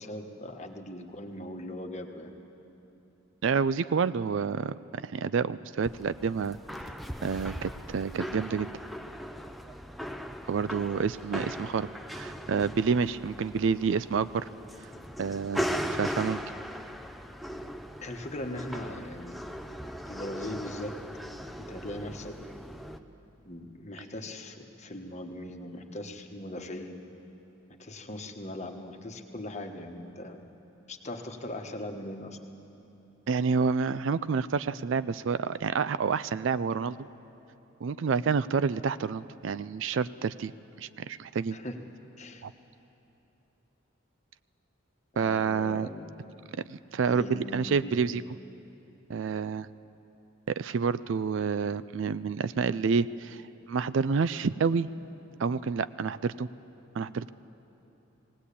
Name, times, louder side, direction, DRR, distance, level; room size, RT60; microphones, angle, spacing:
voice 1, 0.0-2.3 18.0-19.4 20.1-21.0 21.6-22.4 23.4-27.0 27.8-30.4 30.9-32.4 41.5-41.8 42.2-42.4 45.2-46.1 47.1-48.0, left 1 dB, 35° left, 4 dB, 1.3 m, -40 dB
voice 2, 3.4-6.6 7.2-8.7 10.5-11.9 12.1-14.5 15.2-15.6 15.9-16.4 33.3-37.1 37.8-40.5 40.8-41.6 42.4-42.5 45.2-45.9 46.7-48.2 49.1-49.7 50.5-53.4 53.7-54.9 55.4-56.5 56.9-57.3, right 5 dB, 65° right, 16 dB, 0.4 m, -28 dB
sound 1, 5.8-23.0, equal, ahead, 0.5 m, -39 dB
19.5 x 18.0 x 8.4 m, 3.0 s
head